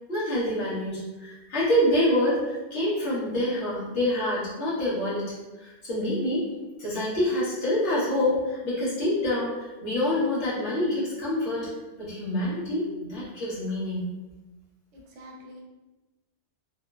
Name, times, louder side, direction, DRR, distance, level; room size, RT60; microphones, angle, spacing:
voice 1, 0.1-6.5 6.8-11.7 12.0-14.1, left 1 dB, 65° left, -9 dB, 1.3 m, -26 dB
voice 2, 14.9-15.6, equal, 75° right, -1 dB, 0.9 m, -46 dB
3.0 x 2.0 x 2.3 m, 1.1 s
omnidirectional pair, 1.3 m